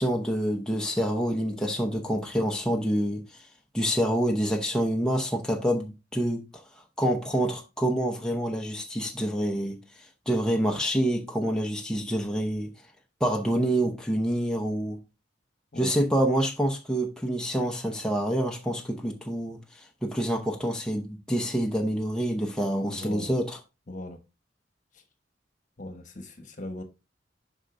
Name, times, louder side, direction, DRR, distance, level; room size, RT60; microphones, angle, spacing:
voice 1, 0.0-3.2 3.7-6.4 7.0-9.8 10.3-12.7 13.2-15.0 15.8-23.6, equal, 5° left, 0.8 m, -27 dB
voice 2, 22.9-23.3 23.9-24.2 24.9-25.0 25.8-26.8, left 1 dB, 45° left, 1.2 m, -39 dB
8.0 x 5.4 x 2.6 m
head